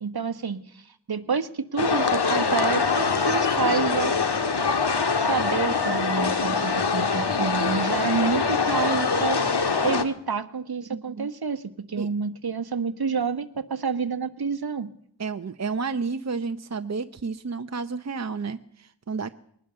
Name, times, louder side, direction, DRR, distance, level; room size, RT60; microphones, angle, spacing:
voice 1, 0.0-4.2 5.2-9.4 9.8-14.9, right 5 dB, 55° right, 10 dB, 1.3 m, -28 dB
sound 1, 1.8-10.0, left 5 dB, 60° left, 1.6 m, -24 dB
voice 2, 10.9-11.3 12.0-12.1 15.2-19.3, right 4 dB, 35° right, 9 dB, 0.7 m, -31 dB
21.0 x 19.5 x 6.8 m, 0.67 s
wide cardioid pair, 85°, 45 cm